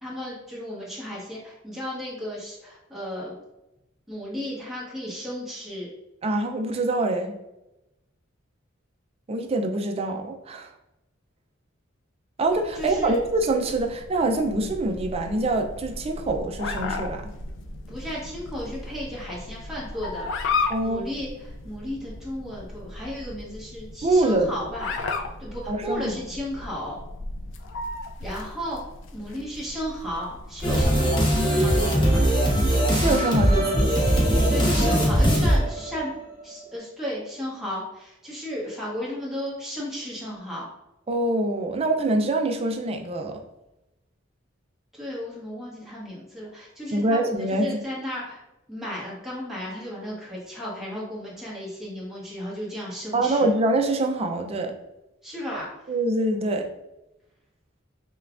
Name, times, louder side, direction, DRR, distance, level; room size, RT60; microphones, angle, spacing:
voice 1, 0.0-3.3 4.1-5.9 12.7-13.2 17.9-20.3 20.8-24.9 25.4-27.0 28.2-28.8 29.1-31.0 31.6-32.3 34.5-36.1 36.4-40.7 44.9-48.4 48.7-53.5 55.2-55.7, equal, ahead, -6 dB, 1.2 m, -34 dB
voice 2, 6.2-7.4 9.3-10.7 12.4-17.3 20.7-21.1 24.0-24.5 25.7-26.1 32.9-34.0 41.1-43.4 46.9-47.8 53.1-54.7 55.9-56.7, right 2 dB, 30° right, 4 dB, 0.4 m, -25 dB
sound 1, 12.5-30.9, left 3 dB, 65° left, 0.4 m, -35 dB
sound 2, 30.6-36.4, equal, 25° left, 0.8 m, -21 dB
5.5 x 2.3 x 2.4 m, 0.93 s
head